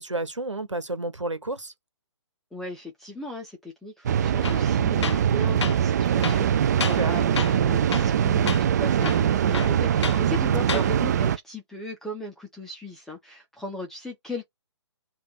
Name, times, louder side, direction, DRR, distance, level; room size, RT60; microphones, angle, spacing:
voice 1, 0.0-1.7 6.8-7.1 10.6-10.9, right 2 dB, 85° right, 1.2 m, -31 dB
voice 2, 2.5-14.4, left 1 dB, ahead, 0.6 m, -37 dB
sound 1, 4.0-11.4, right 9 dB, 35° right, 0.3 m, -22 dB
Tools, 4.4-4.6 5.0-5.3 5.6-5.8 6.2-7.1 7.4-7.6 7.9-8.2 8.5-8.6 9.0-10.2 10.6-10.9, left 6 dB, 70° left, 0.5 m, -31 dB
3.3 x 2.4 x 4.2 m
figure-of-eight pair, 135°, 15 cm